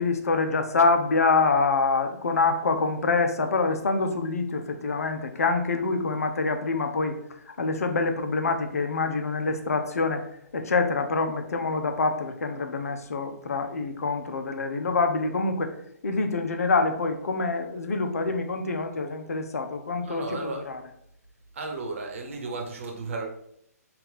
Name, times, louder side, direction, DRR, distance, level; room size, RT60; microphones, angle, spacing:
voice 1, 0.0-10.2 10.5-15.7 16.0-20.8, left 3 dB, 60° left, 6 dB, 0.7 m, -26 dB
voice 2, 20.0-20.7 21.5-23.3, right 3 dB, 50° right, 2 dB, 1.1 m, -34 dB
5.5 x 2.5 x 3.5 m, 0.71 s
figure-of-eight pair, 130°, 9 cm